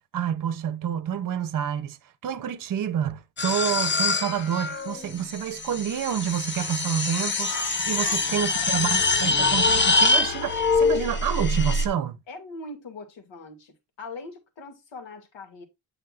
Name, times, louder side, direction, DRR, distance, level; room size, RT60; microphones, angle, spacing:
voice 1, 0.1-2.0 2.2-12.2, right 9 dB, 45° right, 0.7 m, -28 dB
sound 1, 3.4-11.9, left 3 dB, 25° left, 0.6 m, -24 dB
voice 2, 8.0-9.4 12.3-15.6, left 3 dB, 75° left, 2.3 m, -42 dB
9.2 x 6.4 x 2.4 m
wide cardioid pair, 160°, 45 cm